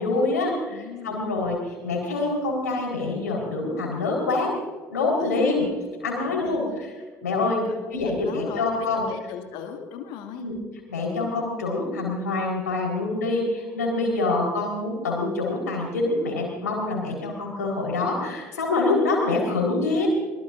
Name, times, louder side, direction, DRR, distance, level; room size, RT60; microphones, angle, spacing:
voice 1, 0.0-4.5 4.9-5.7 6.0-6.9 7.2-9.0 10.4-10.5 10.9-20.1, left 3 dB, 75° left, -1 dB, 4.4 m, -25 dB
voice 2, 0.7-1.2 5.2-5.7 6.2-6.8 7.6-10.5, left 8 dB, 60° left, 5 dB, 2.1 m, -39 dB
23.5 x 20.5 x 2.6 m, 1.4 s
figure-of-eight pair, 55°, 9 cm